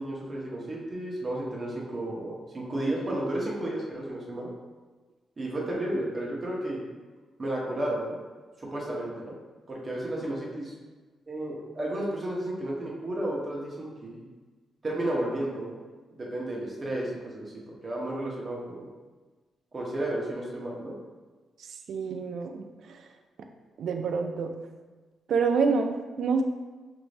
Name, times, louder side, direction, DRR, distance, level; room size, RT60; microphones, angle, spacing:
voice 1, 0.0-4.5 5.4-6.8 7.4-8.2 8.6-9.3 9.7-10.7 11.3-14.2 14.8-15.8 16.2-17.5 17.8-18.9 19.7-20.9, right 1 dB, 25° right, -4 dB, 0.8 m, -32 dB
voice 2, 21.9-23.0 23.8-24.5 25.3-26.4, right 5 dB, 60° right, 4 dB, 0.4 m, -27 dB
6.0 x 2.6 x 3.2 m, 1.3 s
wide cardioid pair, 160°, 0 cm